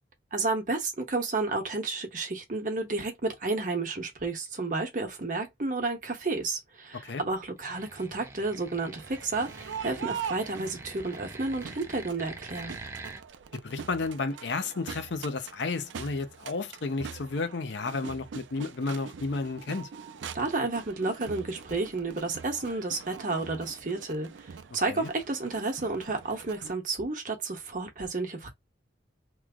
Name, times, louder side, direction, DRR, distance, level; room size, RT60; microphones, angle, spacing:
voice 1, 0.3-12.8 20.3-28.5, right 3 dB, 45° right, 0.9 m, -31 dB
sound 1, 7.6-13.2, right 3 dB, 15° right, 0.4 m, -45 dB
Crowd, 8.9-26.7, right 6 dB, 80° right, 0.4 m, -43 dB
voice 2, 13.6-19.9 24.9-25.1, left 3 dB, 70° left, 0.6 m, -32 dB
3.1 x 2.0 x 3.6 m
head